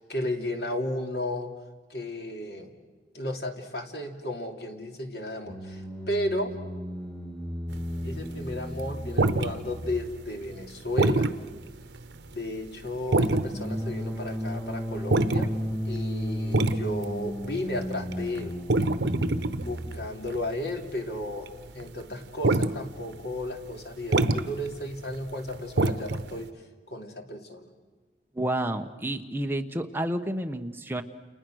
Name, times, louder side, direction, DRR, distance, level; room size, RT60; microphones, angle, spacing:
voice 1, 0.0-1.5 1.9-2.7 3.1-6.6 8.0-11.3 12.3-15.5 15.8-18.6 19.6-26.5 26.9-27.7, left 1 dB, 65° left, 4 dB, 2.8 m, -34 dB
sound 1, 5.5-20.0, equal, 5° left, 2.0 m, -35 dB
sound 2, 7.7-10.2 10.5-11.3 11.7-11.8 12.0-12.4 12.9-13.7 13.9-20.9 21.2-21.8 22.1-22.8 23.1-23.2 23.4-23.5 23.8-26.4, right 2 dB, 85° right, 0.9 m, -26 dB
voice 2, 28.3-31.0, right 1 dB, 10° right, 5 dB, 1.1 m, -30 dB
30.0 x 29.5 x 6.4 m, 1.3 s
head